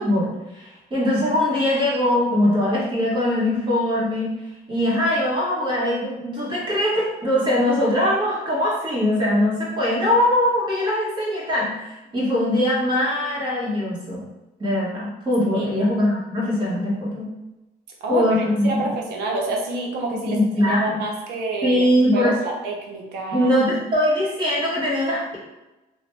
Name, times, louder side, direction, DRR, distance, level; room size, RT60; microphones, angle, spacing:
voice 1, 0.0-4.3 4.7-14.2 14.6-17.3 18.1-18.9 20.2-21.0 21.6-22.3 23.3-25.4, left 1 dB, 30° right, -6 dB, 1.4 m, -21 dB
voice 2, 15.5-15.9 18.0-18.3 18.6-23.6, right 2 dB, 80° right, 0 dB, 0.7 m, -28 dB
3.0 x 2.2 x 3.1 m, 0.99 s
cardioid pair, 110°, 17 cm